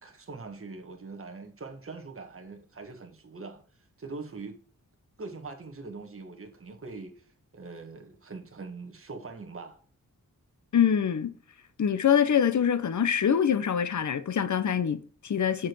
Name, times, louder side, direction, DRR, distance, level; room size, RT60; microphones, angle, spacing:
voice 1, 0.0-3.6 4.0-4.6 5.2-9.8, right 3 dB, 40° right, 1.5 m, -42 dB
voice 2, 10.7-11.3 11.8-15.7, left 8 dB, 60° left, 0.8 m, -24 dB
7.3 x 4.9 x 4.5 m
wide cardioid pair, 125°, 33 cm